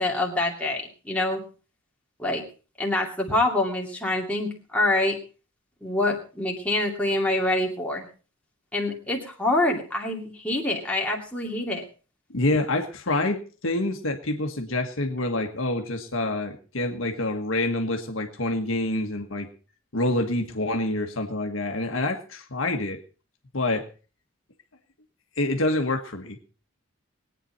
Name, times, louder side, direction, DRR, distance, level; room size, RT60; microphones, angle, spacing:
voice 1, 0.0-1.4 2.2-2.4 2.8-5.2 5.8-8.1 8.7-11.8, left 2 dB, 5° left, -1 dB, 2.5 m, -26 dB
voice 2, 12.3-19.5 19.9-23.0 23.5-23.9 25.4-26.4, left 2 dB, 70° left, 4 dB, 1.5 m, -27 dB
21.5 x 9.2 x 4.2 m, 0.36 s
head